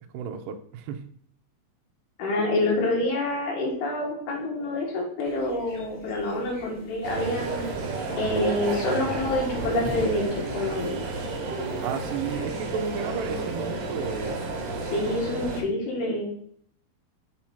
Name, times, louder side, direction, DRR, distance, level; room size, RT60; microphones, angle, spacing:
voice 1, 0.1-1.0 11.8-14.3, right 6 dB, 80° right, 6 dB, 2.0 m, -33 dB
voice 2, 2.2-7.6 8.2-11.0 14.8-16.3, left 2 dB, 75° left, -2 dB, 3.5 m, -27 dB
sound 1, 5.2-10.3, left 1 dB, 45° left, 1.2 m, -43 dB
sound 2, 7.0-15.6, right 3 dB, 65° right, 2.2 m, -31 dB
6.8 x 3.0 x 5.7 m, 0.63 s
omnidirectional pair, 4.6 m